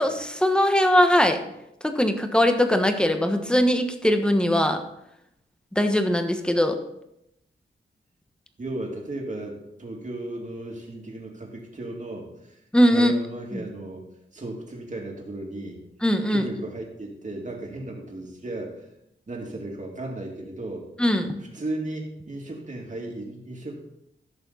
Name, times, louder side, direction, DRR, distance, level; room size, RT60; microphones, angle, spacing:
voice 1, 0.0-1.4 1.8-4.8 5.7-6.8 12.7-13.1 16.0-16.4 21.0-21.4, equal, 5° left, 6 dB, 1.3 m, -20 dB
voice 2, 8.6-12.6 12.9-14.1 14.3-15.8 16.3-18.9 19.3-20.9 21.4-23.8, right 2 dB, 40° right, 0 dB, 2.6 m, -35 dB
16.5 x 6.7 x 4.1 m, 0.81 s
wide cardioid pair, 100°, 20 cm